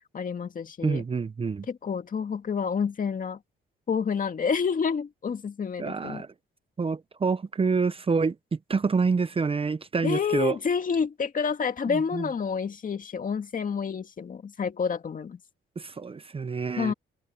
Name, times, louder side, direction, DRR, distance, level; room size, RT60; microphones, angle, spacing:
voice 1, 0.1-1.0 1.7-3.4 3.9-6.2 10.0-15.4 16.8-16.9, left 6 dB, 40° left, 2.2 m, -29 dB
voice 2, 0.8-1.7 5.8-6.3 6.8-10.6 11.9-12.3 15.8-16.9, right 4 dB, 30° right, 0.8 m, -27 dB
open air
cardioid pair, 90°, 20 cm